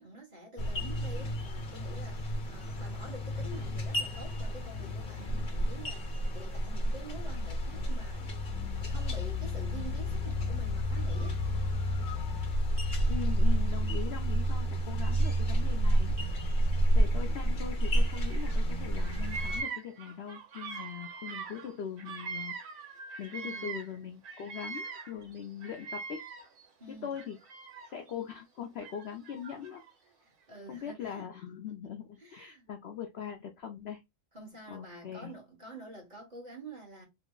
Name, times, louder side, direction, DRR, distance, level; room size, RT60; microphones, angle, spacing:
voice 1, 0.0-11.4 16.7-17.4 23.3-23.8 26.8-27.1 30.2-31.3 32.2-32.7 34.3-37.0, right 2 dB, 30° right, 1.2 m, -48 dB
sound 1, 0.6-19.6, equal, 40° left, 1.0 m, -30 dB
voice 2, 13.1-16.1 16.9-22.5 23.2-26.2 26.9-27.4 27.8-29.8 30.7-34.0 34.7-35.3, left 8 dB, 65° left, 0.6 m, -41 dB
Bird vocalization bird call bird song, 17.9-18.6 18.9-24.0 24.2-26.6 27.1-28.1 28.8-29.9, right 4 dB, 85° right, 1.5 m, -42 dB
3.1 x 2.1 x 3.6 m
omnidirectional pair, 1.6 m